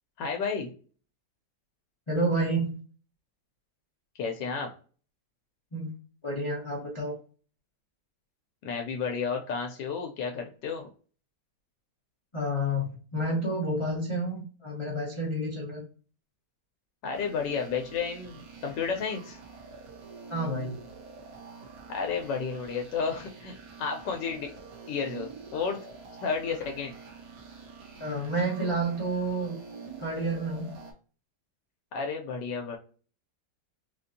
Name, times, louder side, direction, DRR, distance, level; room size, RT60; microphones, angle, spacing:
voice 1, 0.2-0.7 4.2-4.7 8.6-10.9 17.0-19.4 21.9-24.5 24.9-25.8 26.2-26.9 31.9-32.8, left 5 dB, 85° left, 3 dB, 1.3 m, -32 dB
voice 2, 2.1-2.8 5.7-5.9 6.2-7.1 12.3-15.8 20.3-20.8 28.0-29.6 30.0-30.7, right 1 dB, 50° left, -4 dB, 0.3 m, -30 dB
sound 1, 17.1-30.9, right 5 dB, 60° right, 1.3 m, -46 dB
4.0 x 2.5 x 2.6 m, 0.39 s
omnidirectional pair, 1.9 m